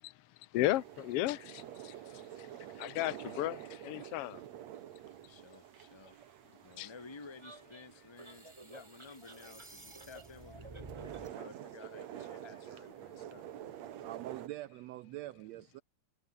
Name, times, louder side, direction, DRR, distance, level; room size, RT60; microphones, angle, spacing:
voice 1, 0.0-4.4 6.8-6.9, left 15 dB, 70° left, 1.5 m, -35 dB
sound 1, 0.5-14.5, right 11 dB, 65° right, 2.4 m, -49 dB
voice 2, 5.2-6.2 6.6-13.5, left 4 dB, 10° left, 1.6 m, -54 dB
sound 2, 7.4-11.4, right 2 dB, 25° right, 0.6 m, -52 dB
voice 3, 14.0-15.8, right 16 dB, 80° right, 1.5 m, -44 dB
omnidirectional pair, 3.5 m